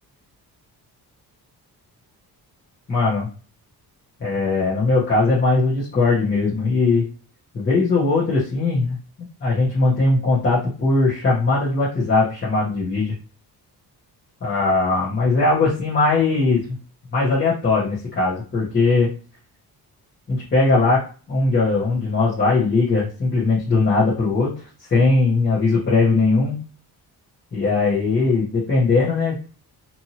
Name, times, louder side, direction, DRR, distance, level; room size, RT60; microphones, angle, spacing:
voice 1, 2.9-3.3 4.2-7.0 7.5-9.0 9.4-13.1 14.4-16.8 17.1-19.1 20.3-21.0 21.3-24.5 24.9-26.5 27.5-29.5, left 3 dB, 30° left, -8 dB, 0.9 m, -19 dB
2.7 x 2.5 x 2.8 m, 0.38 s
wide cardioid pair, 175°, 38 cm